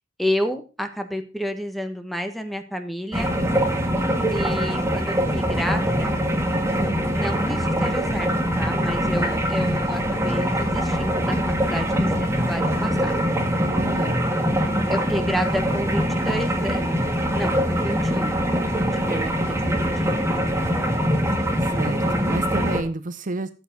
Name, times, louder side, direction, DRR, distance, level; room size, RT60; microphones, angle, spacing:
voice 1, 0.2-3.3 4.3-6.1 7.1-8.3 8.6-11.4 11.6-13.1 14.9-17.0 17.3-18.3 18.9-19.9, equal, ahead, 8 dB, 1.2 m, -30 dB
sound 1, 3.1-22.8, equal, 15° right, 1.7 m, -23 dB
voice 2, 13.5-14.3 21.7-23.5, right 2 dB, 45° right, 12 dB, 0.7 m, -30 dB
14.0 x 7.4 x 4.0 m, 0.32 s
head